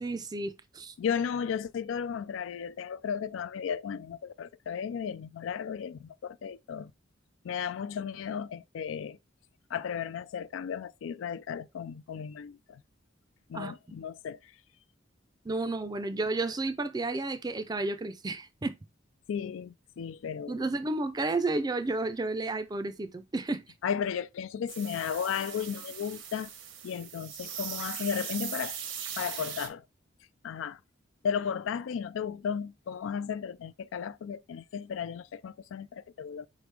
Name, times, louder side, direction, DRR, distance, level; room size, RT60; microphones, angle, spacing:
voice 1, 0.0-0.9 13.5-13.7 15.5-18.8 20.5-23.6, right 2 dB, 20° right, 0.4 m, -32 dB
voice 2, 1.0-6.9 7.4-9.2 9.7-12.8 13.5-14.5 19.3-20.7 23.8-26.5 26.8-28.8 29.2-29.8 30.4-30.8 31.2-36.5, left 7 dB, 85° left, 0.3 m, -34 dB
sound 1, 24.7-29.7, right 8 dB, 80° right, 1.0 m, -39 dB
4.9 x 3.2 x 3.3 m
head